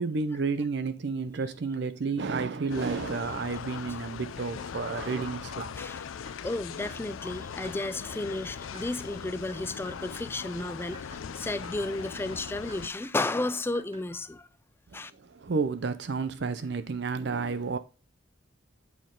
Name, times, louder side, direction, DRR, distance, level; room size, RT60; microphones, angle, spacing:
voice 1, 0.0-5.7 14.9-15.0 15.3-17.8, right 4 dB, 60° right, 0.5 m, -31 dB
sound 1, 2.7-12.9, left 7 dB, 90° left, 0.4 m, -40 dB
sound 2, 5.5-5.7 6.3-6.5 6.8-7.1 7.6-7.8 8.7-10.1 10.6-14.1, right 1 dB, 30° right, 1.4 m, -50 dB
voice 2, 5.8-6.1 6.4-14.5 14.9-15.1, left 2 dB, 10° left, 0.3 m, -33 dB
8.3 x 4.2 x 3.7 m
head